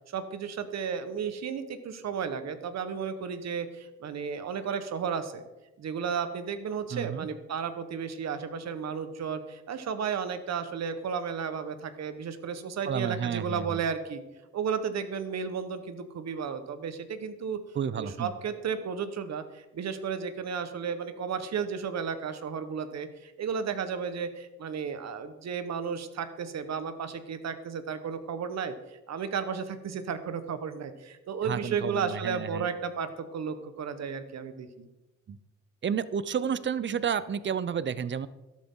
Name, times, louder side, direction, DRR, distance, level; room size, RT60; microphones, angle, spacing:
voice 1, 0.1-5.4 5.8-14.2 14.5-17.6 17.9-28.7 29.1-34.9, right 6 dB, 60° right, 10 dB, 1.4 m, -33 dB
voice 2, 6.9-7.3 12.8-13.8 17.8-18.3 31.4-32.7 35.3-35.4 35.8-38.3, right 7 dB, 40° right, 16 dB, 0.7 m, -31 dB
13.0 x 11.5 x 3.9 m, 1.0 s
cardioid pair, 90°, 30 cm